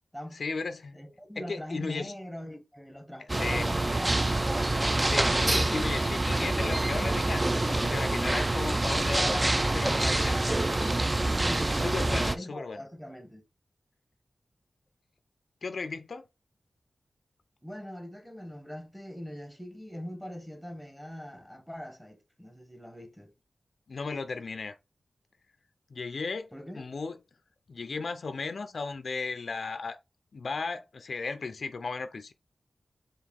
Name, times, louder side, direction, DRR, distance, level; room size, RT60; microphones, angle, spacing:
voice 1, 0.3-1.0 1.4-2.1 3.3-3.7 4.9-10.6 11.7-12.8 15.6-16.3 23.9-24.7 25.9-26.5 26.7-27.2 27.7-30.0 30.3-32.3, left 4 dB, 65° left, 0.4 m, -35 dB
voice 2, 0.9-4.9 9.9-10.7 11.4-13.4 17.6-23.3 26.5-26.9, equal, ahead, 1.0 m, -42 dB
sound 1, 3.3-12.4, right 2 dB, 25° right, 0.3 m, -26 dB
4.7 x 2.4 x 3.4 m
wide cardioid pair, 105°, 0 cm